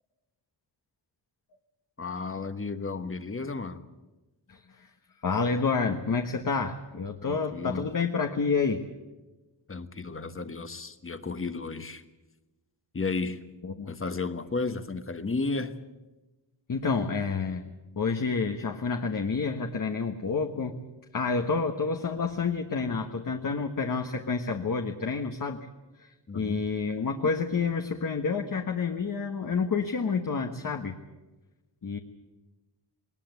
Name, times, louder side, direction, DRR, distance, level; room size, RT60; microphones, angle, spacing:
voice 1, 2.0-3.8 7.2-7.9 9.7-12.0 12.9-13.4 13.9-15.7 26.3-26.6, left 3 dB, 30° left, 10 dB, 1.3 m, -33 dB
voice 2, 4.5-4.9 5.2-8.8 13.6-13.9 16.7-17.7 18.0-20.7 21.1-25.7 26.0-31.0 31.8-32.0, left 5 dB, 45° left, 4 dB, 1.4 m, -29 dB
20.0 x 19.5 x 8.3 m, 1.1 s
wide cardioid pair, 110°, 44 cm